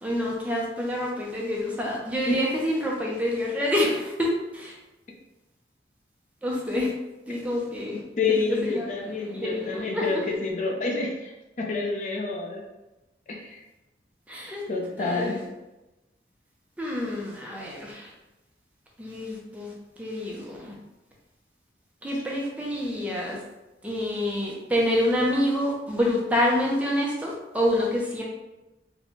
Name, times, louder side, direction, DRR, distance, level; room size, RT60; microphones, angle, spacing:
voice 1, 0.0-4.7 6.4-6.9 7.3-8.0 8.3-8.4 8.6-8.8 9.2-10.1 14.3-14.6 15.0-15.4 16.8-18.1 19.0-19.7 20.0-20.7 22.0-23.4 23.8-28.2, left 1 dB, 10° right, -3 dB, 0.6 m, -27 dB
voice 2, 7.9-12.6 13.3-13.6 14.7-15.4, left 3 dB, 45° left, 0 dB, 0.5 m, -28 dB
4.0 x 2.2 x 3.0 m, 1.0 s
head